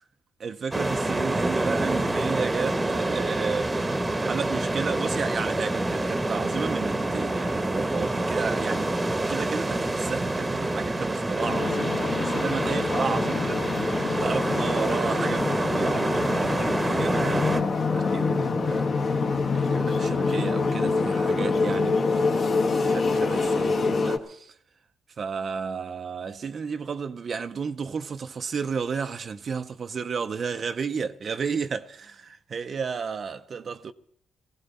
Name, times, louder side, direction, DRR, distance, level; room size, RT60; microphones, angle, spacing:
voice 1, 0.4-9.0 9.3-19.1 19.5-22.2 22.8-24.6 25.2-33.9, right 5 dB, 45° right, 0.5 m, -32 dB
sound 1, 0.7-17.6, right 2 dB, 15° right, 1.0 m, -27 dB
sound 2, 11.4-24.2, left 4 dB, 50° left, 1.4 m, -26 dB
18.5 x 15.5 x 4.1 m
cardioid pair, 90°, 0 cm